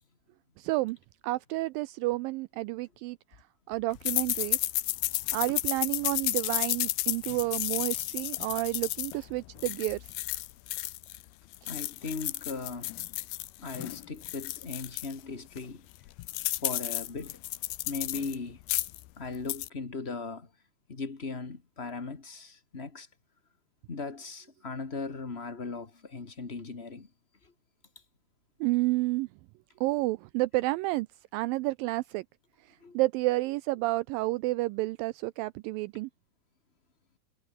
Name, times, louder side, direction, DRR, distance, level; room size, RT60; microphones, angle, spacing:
voice 1, 0.6-1.0 1.2-3.2 3.7-4.6 5.3-10.1 11.6-11.8 28.6-29.3 29.8-31.1 31.3-32.3 32.6-36.1, right 20 dB, 85° right, 2.0 m, -30 dB
sound 1, 4.1-11.2 11.5-15.1 15.6-15.7 15.9-18.4 18.6-19.0 19.4-19.7, left 18 dB, 85° left, 2.8 m, -32 dB
voice 2, 11.7-12.9 13.6-15.9 16.6-17.4 17.8-18.6 19.2-20.5 20.9-23.1 23.9-27.1 27.4-27.5 32.8-33.0, left 4 dB, 25° left, 1.4 m, -38 dB
omnidirectional pair, 4.4 m